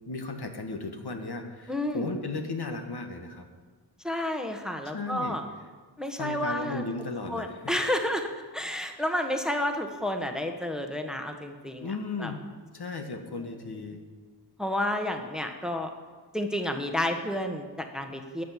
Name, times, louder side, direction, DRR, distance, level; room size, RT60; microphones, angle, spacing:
voice 1, 0.0-3.5 4.9-5.4 6.1-7.7 11.8-12.4 12.7-14.0, left 3 dB, 60° left, 5 dB, 1.5 m, -35 dB
voice 2, 1.7-2.1 4.0-5.4 6.0-6.8 7.3-12.3 14.6-15.9 16.3-18.4, left 1 dB, ahead, 4 dB, 1.3 m, -31 dB
14.0 x 6.5 x 9.2 m, 1.4 s
wide cardioid pair, 70°, 44 cm